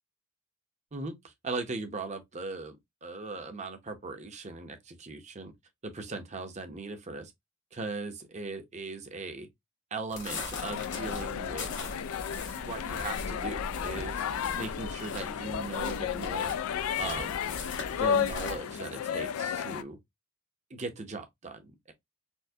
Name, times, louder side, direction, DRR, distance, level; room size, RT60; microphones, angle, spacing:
voice 1, 0.9-5.5 5.8-7.3 7.7-9.5 9.9-11.7 12.6-14.2 14.5-16.6 17.0-17.4 17.9-20.0 20.7-21.9, right 3 dB, 35° right, 0.7 m, -39 dB
sound 1, 10.1-18.6, left 3 dB, 60° left, 1.2 m, -40 dB
sound 2, 10.5-19.8, left 8 dB, 80° left, 0.3 m, -33 dB
4.3 x 2.1 x 2.7 m
head